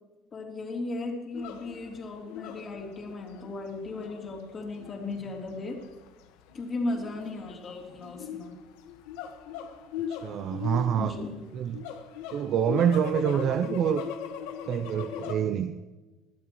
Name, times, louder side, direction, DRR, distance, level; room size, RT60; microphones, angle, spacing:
voice 1, 0.3-5.8 6.5-8.5 11.0-11.3 13.3-13.4, left 2 dB, 30° left, 0 dB, 3.3 m, -36 dB
sound 1, 1.3-15.3, left 8 dB, 90° left, 1.4 m, -39 dB
voice 2, 10.1-11.1 11.5-11.8 12.3-14.0 14.7-15.7, right 9 dB, 50° right, 11 dB, 0.5 m, -26 dB
21.5 x 12.0 x 3.1 m, 1.2 s
cardioid pair, 135°, 0 cm